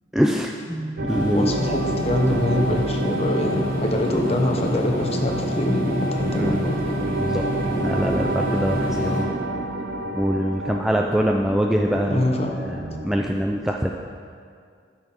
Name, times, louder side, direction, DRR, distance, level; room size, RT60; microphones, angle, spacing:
voice 1, 0.1-1.5 6.3-6.7 7.1-7.5 7.7-9.3 10.1-13.9, equal, ahead, 1 dB, 0.3 m, -24 dB
sound 1, 1.0-13.1, right 2 dB, 55° right, 0.6 m, -30 dB
sound 2, 1.1-9.2, equal, 50° left, 1.2 m, -28 dB
voice 2, 1.3-6.7 12.1-12.5, left 1 dB, 35° left, 2 dB, 1.0 m, -24 dB
13.0 x 5.9 x 4.4 m, 2.2 s
head